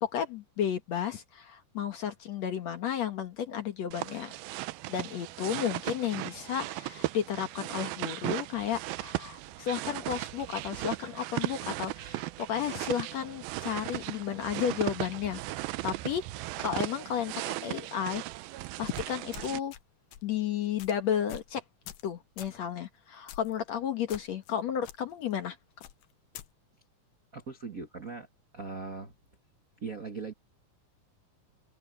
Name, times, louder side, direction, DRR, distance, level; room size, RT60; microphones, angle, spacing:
voice 1, 0.0-4.4 4.9-15.4 15.8-16.3 16.6-18.2 18.8-19.7 20.2-21.6 22.0-25.6, left 9 dB, 60° left, 2.2 m, -33 dB
sound 1, 3.9-19.6, right 18 dB, 90° right, 2.6 m, -37 dB
sound 2, 18.9-19.8 20.1-20.3 20.8-20.9 21.3-21.5 21.9-22.1 22.4-22.6 23.3-23.6 24.1-24.5 24.8-25.0 25.8-26.5, left 12 dB, 80° left, 2.8 m, -46 dB
voice 2, 27.3-28.3 28.5-29.1 29.8-30.3, right 4 dB, 45° right, 1.1 m, -39 dB
open air
omnidirectional pair, 4.1 m